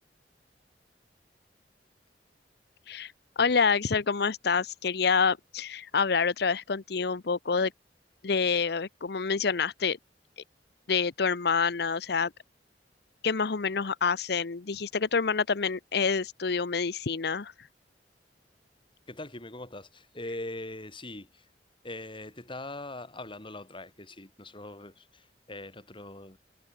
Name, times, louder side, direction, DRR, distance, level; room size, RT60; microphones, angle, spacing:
voice 1, 2.9-7.7 8.2-10.0 10.9-12.3 13.2-17.5, left 5 dB, 65° left, 0.8 m, -27 dB
voice 2, 19.1-21.5 21.8-26.4, left 2 dB, 30° left, 7.7 m, -41 dB
head